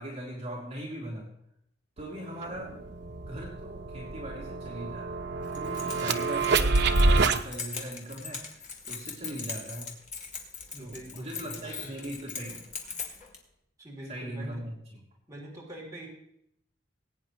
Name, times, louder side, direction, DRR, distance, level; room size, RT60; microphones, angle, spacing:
voice 1, 0.0-1.3 2.0-2.8 3.3-10.0 10.8-12.7 14.1-15.0, right 1 dB, 35° right, -5 dB, 2.9 m, -40 dB
sound 1, 2.0-2.1 2.4-7.4, right 3 dB, 65° right, 0.7 m, -27 dB
Keys jangling, 5.4-13.4, left 5 dB, 45° left, 2.2 m, -41 dB
voice 2, 10.7-11.9 13.8-14.6 15.3-16.1, right 1 dB, 20° right, -4 dB, 3.3 m, -44 dB
19.5 x 9.3 x 3.1 m, 0.75 s
head